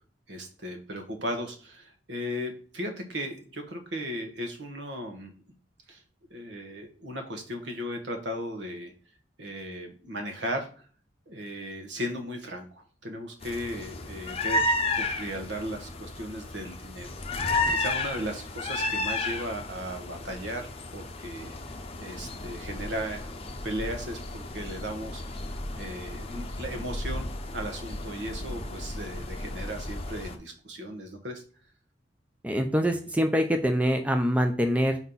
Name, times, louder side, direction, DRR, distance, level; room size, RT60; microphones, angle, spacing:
voice 1, 0.3-5.3 5.9-6.0 6.3-8.9 9.4-10.7 11.3-17.2 17.7-23.3 23.6-25.3 25.8-31.4, equal, 65° right, 4 dB, 1.3 m, -36 dB
sound 1, 13.4-30.4, left 2 dB, 30° left, 0.7 m, -33 dB
voice 2, 32.4-35.0, equal, 10° right, 5 dB, 0.5 m, -24 dB
4.7 x 4.3 x 5.4 m, 0.43 s
head